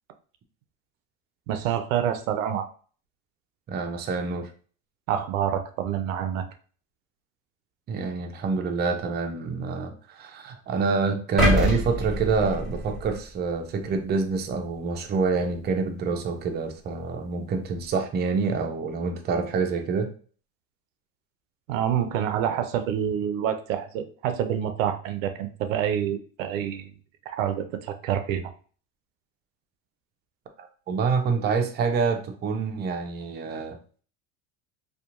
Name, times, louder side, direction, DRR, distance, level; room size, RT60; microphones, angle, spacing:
voice 1, 1.5-2.7 5.1-6.5 21.7-26.9 27.3-28.5, right 9 dB, 90° right, 9 dB, 0.5 m, -27 dB
voice 2, 3.7-4.5 7.9-20.1 30.6-33.8, right 4 dB, 25° right, 5 dB, 0.4 m, -27 dB
sound 1, 11.4-13.5 14.0-14.2, equal, ahead, 1.3 m, -25 dB
2.8 x 2.2 x 2.4 m, 0.41 s
supercardioid pair, 95°, 38 cm